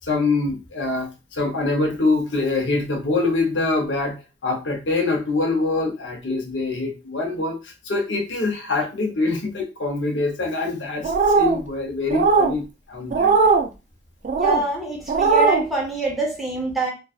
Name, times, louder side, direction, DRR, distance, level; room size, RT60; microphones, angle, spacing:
voice 1, 0.1-4.2 4.4-13.5, left 3 dB, 75° left, 1 dB, 0.7 m, -24 dB
sound 1, 11.0-11.6 12.1-12.5 13.1-13.7 14.2-14.6 15.1-15.6, right 4 dB, 45° right, 0.3 m, -18 dB
voice 2, 14.4-16.9, right 2 dB, ahead, -3 dB, 0.8 m, -26 dB
2.5 x 2.3 x 2.4 m, 0.29 s
head